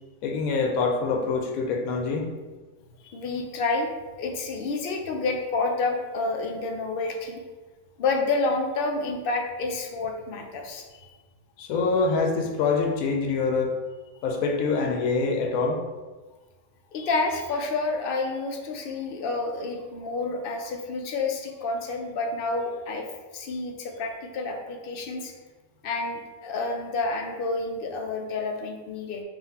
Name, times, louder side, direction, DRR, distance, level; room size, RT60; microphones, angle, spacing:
voice 1, 0.2-2.3 11.6-13.8 14.2-15.8, left 4 dB, 80° left, 2 dB, 1.0 m, -25 dB
voice 2, 3.0-3.9 4.2-7.4 8.0-10.8 16.9-23.1 23.3-25.3 25.8-29.2, left 3 dB, 65° left, 3 dB, 0.5 m, -29 dB
3.9 x 2.5 x 4.0 m, 1.3 s
omnidirectional pair, 1.5 m